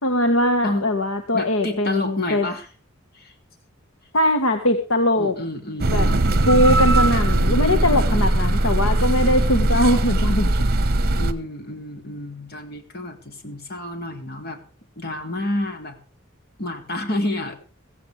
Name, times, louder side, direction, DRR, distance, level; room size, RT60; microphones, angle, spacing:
voice 1, 0.0-2.5 4.1-5.3 5.9-6.1 6.5-10.5, left 1 dB, 70° left, 6 dB, 1.6 m, -21 dB
voice 2, 1.3-2.7 3.1-3.3 5.2-6.7 11.2-14.6 15.0-16.0 16.6-17.5, left 1 dB, 50° left, 5 dB, 2.9 m, -29 dB
sound 1, 5.8-11.3, right 1 dB, 50° right, 1.2 m, -19 dB
16.0 x 15.5 x 3.5 m, 0.34 s
head